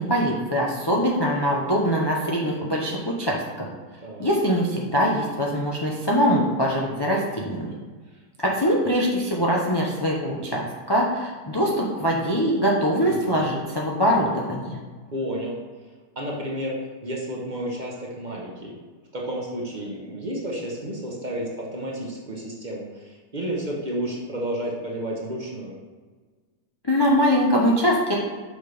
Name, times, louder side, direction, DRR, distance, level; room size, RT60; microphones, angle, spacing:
voice 1, 0.0-3.7 4.2-7.7 8.4-14.8 26.8-28.1, equal, 30° left, -3 dB, 0.4 m, -23 dB
voice 2, 13.0-13.5 15.1-15.6 16.2-16.7 17.0-18.7 19.1-25.8, right 1 dB, 35° right, -2 dB, 0.9 m, -31 dB
6.4 x 5.3 x 3.3 m, 1.4 s
omnidirectional pair, 1.6 m